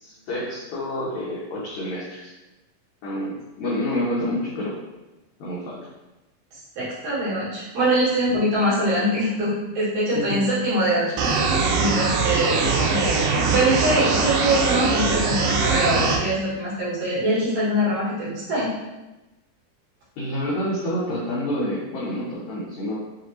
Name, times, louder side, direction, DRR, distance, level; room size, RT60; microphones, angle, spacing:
voice 1, 0.0-2.3 3.0-4.8 5.4-5.8 10.1-10.4 12.7-12.9 20.2-23.0, left 1 dB, 85° left, -7 dB, 1.6 m, -28 dB
voice 2, 6.5-18.7, right 1 dB, 65° right, -10 dB, 3.0 m, -23 dB
sound 1, 11.2-16.2, right 4 dB, 80° right, 2.2 m, -22 dB
6.4 x 2.5 x 2.8 m, 1.1 s
omnidirectional pair, 4.4 m